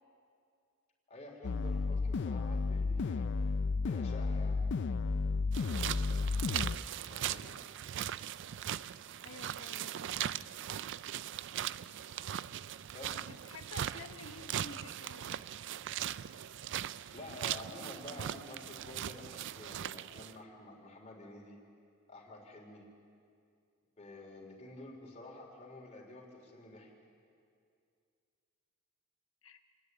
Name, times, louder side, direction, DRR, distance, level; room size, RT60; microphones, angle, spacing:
voice 1, 1.1-3.3 3.8-4.6 7.1-7.6 12.9-13.3 17.1-21.6 22.1-22.8 24.0-26.9, left 2 dB, 30° left, -1 dB, 3.6 m, -50 dB
sound 1, 1.4-6.8, left 4 dB, 60° left, 0.4 m, -32 dB
sound 2, 5.5-20.4, right 10 dB, 60° right, 0.4 m, -39 dB
voice 2, 9.2-9.9 13.0-15.4 29.4-29.6, left 3 dB, 75° left, 7 dB, 1.3 m, -50 dB
27.0 x 10.5 x 9.6 m, 2.3 s
head